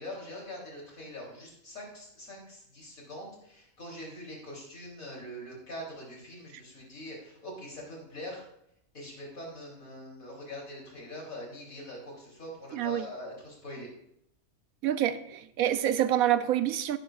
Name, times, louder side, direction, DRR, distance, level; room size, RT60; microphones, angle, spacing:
voice 1, 0.0-8.4 8.9-13.9, left 1 dB, 75° left, 3.9 m, -43 dB
voice 2, 12.7-13.1 14.8-17.0, right 11 dB, 90° right, 1.1 m, -27 dB
16.5 x 9.1 x 2.5 m
omnidirectional pair, 1.4 m